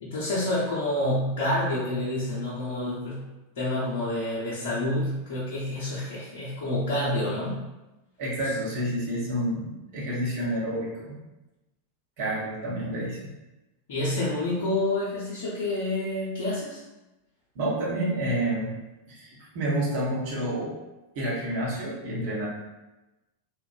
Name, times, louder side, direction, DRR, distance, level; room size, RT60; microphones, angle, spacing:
voice 1, 0.0-3.2 3.6-7.6 13.9-16.8, left 1 dB, 55° left, -8 dB, 0.6 m, -28 dB
voice 2, 8.2-11.2 12.2-13.3 17.5-18.7 19.1-20.8 21.1-22.5, right 1 dB, 45° right, -5 dB, 0.9 m, -29 dB
2.9 x 2.2 x 2.5 m, 1.0 s
figure-of-eight pair, 90°, 0 cm